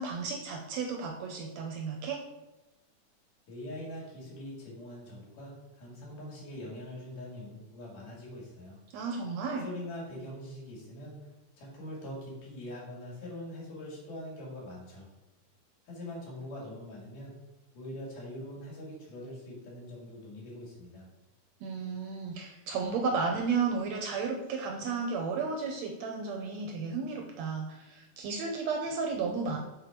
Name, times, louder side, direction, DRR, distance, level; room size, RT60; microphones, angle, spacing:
voice 1, 0.0-2.2 8.9-9.7 21.6-29.6, right 4 dB, 80° right, 2 dB, 1.6 m, -33 dB
voice 2, 3.5-8.8 9.5-11.3 11.6-15.1 15.9-17.3 17.8-21.1, left 1 dB, 90° left, -4 dB, 3.7 m, -43 dB
6.6 x 4.0 x 4.6 m, 1.0 s
omnidirectional pair, 3.6 m